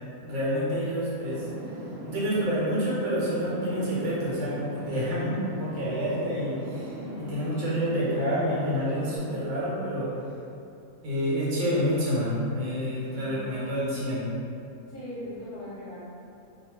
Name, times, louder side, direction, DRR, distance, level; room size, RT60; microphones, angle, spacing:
voice 1, 0.2-1.4 2.0-10.1 11.0-14.3, equal, 60° right, -7 dB, 1.1 m, -28 dB
sound 1, 1.2-9.2, right 1 dB, 80° right, 1.1 m, -39 dB
voice 2, 6.9-7.4 13.0-13.6 14.9-16.1, left 1 dB, 50° left, -10 dB, 0.8 m, -40 dB
2.6 x 2.3 x 3.0 m, 2.6 s
omnidirectional pair, 1.5 m